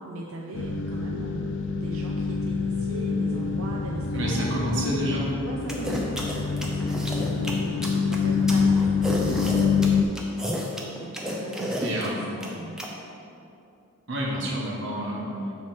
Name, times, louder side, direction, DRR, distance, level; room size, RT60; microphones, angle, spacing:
voice 1, 0.0-4.7 5.4-10.2 11.2-12.9 14.9-15.5, right 1 dB, 85° right, -1 dB, 0.5 m, -38 dB
sound 1, 0.5-10.0, left 5 dB, 55° left, 0.3 m, -26 dB
voice 2, 4.1-5.3 11.8-12.3 14.1-15.3, right 1 dB, 60° right, -3 dB, 1.3 m, -29 dB
sound 2, 5.7-12.9, equal, 5° right, 0.6 m, -31 dB
7.2 x 3.1 x 6.0 m, 2.7 s
head